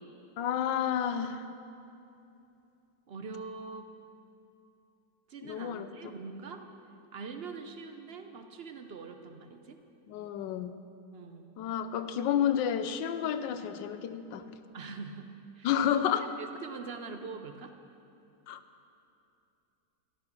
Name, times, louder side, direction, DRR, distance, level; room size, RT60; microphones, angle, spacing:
voice 1, 0.4-1.5 5.4-5.9 10.1-10.7 11.6-14.4 15.6-16.3 18.5-18.6, left 9 dB, 90° left, 11 dB, 1.4 m, -30 dB
voice 2, 3.1-3.9 5.3-6.6 7.1-9.8 11.1-11.6 14.7-16.0 16.4-17.7, right 4 dB, 60° right, 6 dB, 0.6 m, -43 dB
13.5 x 12.0 x 6.0 m, 2.7 s
omnidirectional pair, 1.9 m